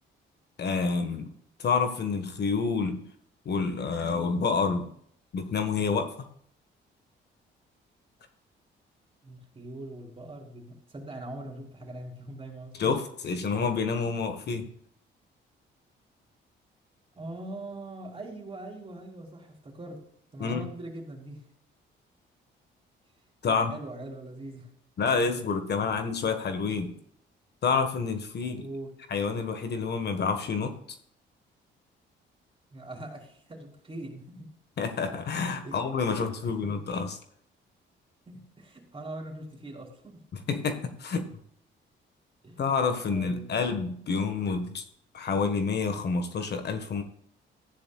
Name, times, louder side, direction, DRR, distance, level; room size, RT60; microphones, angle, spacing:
voice 1, 0.6-1.3 1.6-3.0 3.4-4.9 5.3-6.1 12.8-14.7 20.4-20.7 23.4-23.7 25.0-26.9 27.6-28.7 29.1-30.8 34.8-37.2 40.5-41.3 42.6-44.8 45.1-47.0, left 5 dB, 55° left, 7 dB, 1.5 m, -28 dB
voice 2, 9.2-12.9 13.6-13.8 14.5-14.6 17.1-20.0 20.3-21.5 23.4-24.7 28.5-28.9 32.7-34.5 35.6-35.9 36.4-36.8 38.3-40.2 42.4-43.6, right 1 dB, 25° right, 1 dB, 3.8 m, -42 dB
14.5 x 10.0 x 2.4 m, 0.66 s
cardioid pair, 90°, 20 cm